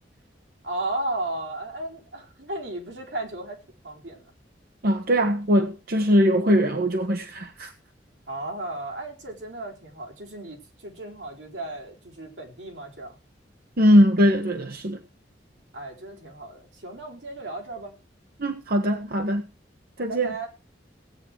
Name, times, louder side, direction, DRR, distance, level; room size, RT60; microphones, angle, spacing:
voice 1, 0.6-3.6 3.8-4.3 8.3-13.2 15.7-17.9 20.1-20.5, right 2 dB, 85° right, 4.3 m, -34 dB
voice 2, 4.8-7.7 13.8-15.0 18.4-19.5 20.0-20.3, equal, 60° right, 1.2 m, -21 dB
17.0 x 9.1 x 4.7 m
head